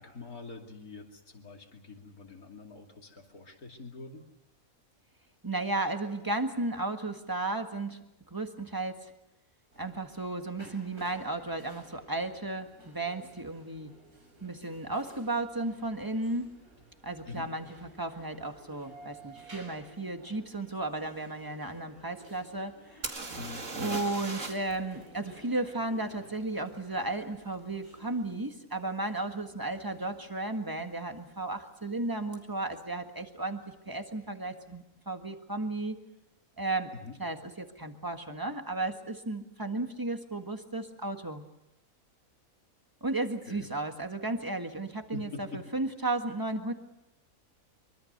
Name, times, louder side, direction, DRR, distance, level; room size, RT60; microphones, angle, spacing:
voice 1, 0.0-4.2 17.2-17.5 23.4-24.0 36.9-37.1 43.5-43.7 45.1-45.6, left 4 dB, 80° left, 2 dB, 3.2 m, -44 dB
voice 2, 5.4-8.0 8.3-9.1 9.8-13.9 14.4-16.5 17.0-22.8 23.7-36.0 36.6-36.9 37.2-41.4 43.0-46.7, right 2 dB, 15° right, 6 dB, 1.6 m, -34 dB
sound 1, 9.7-28.3, right 2 dB, 85° right, 6.9 m, -54 dB
sound 2, 23.0-24.7 25.0-25.1 28.5-28.6 29.3-29.4 29.7-30.3 32.3-32.4 32.7-32.8, right 3 dB, 55° right, 2.6 m, -38 dB
24.0 x 24.0 x 6.7 m, 0.89 s
omnidirectional pair, 1.5 m